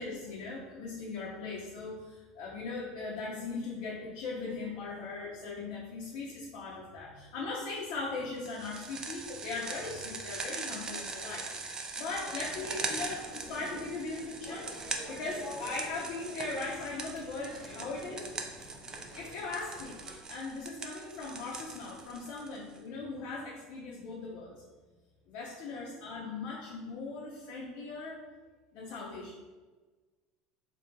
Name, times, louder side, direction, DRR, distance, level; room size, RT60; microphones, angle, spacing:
voice 1, 0.0-14.7 15.1-18.3 19.1-24.6 25.3-28.3 28.7-29.4, left 3 dB, 65° left, -4 dB, 0.6 m, -39 dB
sound 1, 8.4-22.8, right 3 dB, 25° right, 0.4 m, -41 dB
sound 2, 12.1-20.1, equal, ahead, 0.8 m, -49 dB
2.7 x 2.3 x 3.9 m, 1.3 s
supercardioid pair, 120°, 3 cm